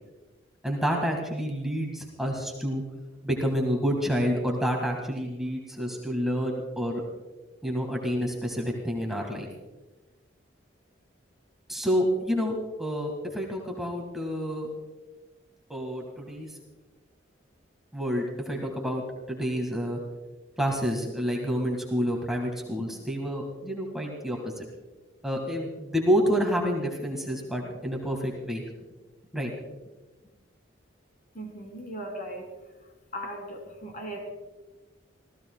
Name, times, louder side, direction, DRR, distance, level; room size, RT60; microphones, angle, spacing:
voice 1, 0.6-2.8 3.2-7.0 7.6-9.5 11.7-14.7 15.7-16.6 17.9-20.0 20.6-24.7 25.2-28.6 29.3-29.5, equal, ahead, 0 dB, 1.7 m, -28 dB
voice 2, 31.3-32.6 33.1-34.3, right 1 dB, 45° left, 2 dB, 2.9 m, -38 dB
26.0 x 16.5 x 2.3 m, 1.2 s
head